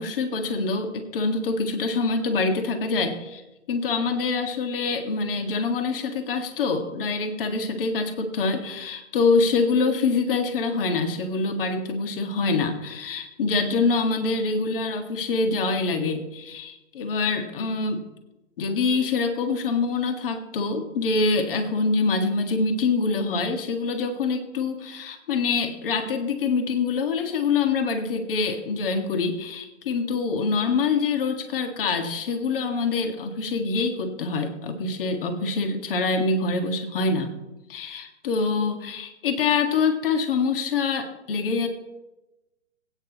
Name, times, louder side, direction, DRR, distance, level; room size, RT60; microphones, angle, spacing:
voice 1, 0.0-3.4 3.7-18.0 18.6-37.3 37.7-41.7, left 4 dB, 50° left, 5 dB, 1.8 m, -25 dB
20.5 x 9.4 x 3.0 m, 1.0 s
hypercardioid pair, 140°, 36 cm